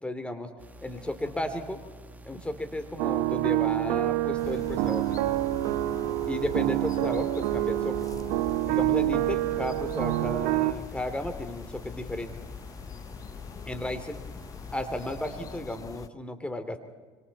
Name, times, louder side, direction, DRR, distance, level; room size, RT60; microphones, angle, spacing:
voice 1, 0.0-0.5 0.8-1.8 2.2-5.2 6.3-8.1 8.6-12.3 13.7-14.2 14.7-16.8, left 1 dB, 10° left, 9 dB, 3.0 m, -34 dB
sound 1, 0.6-15.6, right 1 dB, 15° right, 2.0 m, -48 dB
voice 2, 0.9-1.5 5.6-6.2 8.9-9.6 13.2-14.1, left 8 dB, 50° left, 4 dB, 2.1 m, -54 dB
sound 2, 3.0-10.7, right 17 dB, 80° right, 0.8 m, -27 dB
sound 3, 4.4-16.1, left 7 dB, 35° left, 0.6 m, -43 dB
26.0 x 25.5 x 4.2 m, 1.4 s
supercardioid pair, 80°, 10 cm